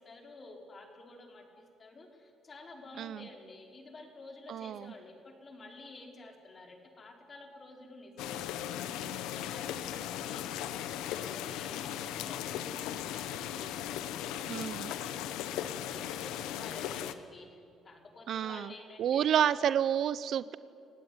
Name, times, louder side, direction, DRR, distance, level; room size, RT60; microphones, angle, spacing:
voice 1, 0.0-8.5 8.9-19.6, left 2 dB, 35° left, 2 dB, 4.9 m, -51 dB
voice 2, 3.0-3.3 4.5-4.9 14.5-14.9 18.3-18.7 19.0-20.5, right 9 dB, 65° right, 16 dB, 0.7 m, -30 dB
sound 1, 8.2-17.1, left 11 dB, 85° left, 1.1 m, -37 dB
28.5 x 17.0 x 9.7 m, 2.5 s
cardioid pair, 95°, 0 cm